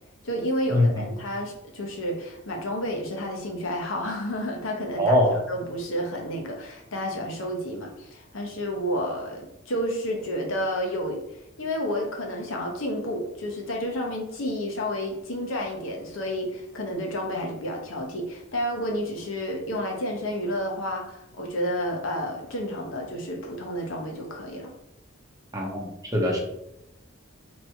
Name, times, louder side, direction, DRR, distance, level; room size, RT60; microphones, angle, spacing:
voice 1, 0.2-5.2 5.5-24.7, equal, 80° left, 1 dB, 0.9 m, -30 dB
voice 2, 5.0-5.4 25.5-25.9 26.1-26.4, left 1 dB, 15° right, -2 dB, 0.8 m, -21 dB
3.0 x 2.7 x 4.4 m, 0.85 s
head